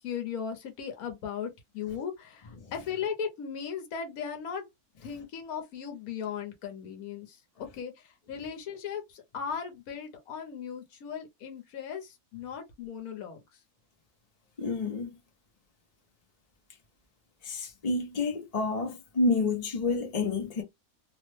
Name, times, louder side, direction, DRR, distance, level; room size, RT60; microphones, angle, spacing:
voice 1, 0.0-4.7 5.0-13.4, left 7 dB, 75° left, 1.3 m, -37 dB
voice 2, 14.6-15.1 17.4-20.6, left 3 dB, 40° left, 0.6 m, -29 dB
3.1 x 2.1 x 3.1 m
omnidirectional pair, 1.6 m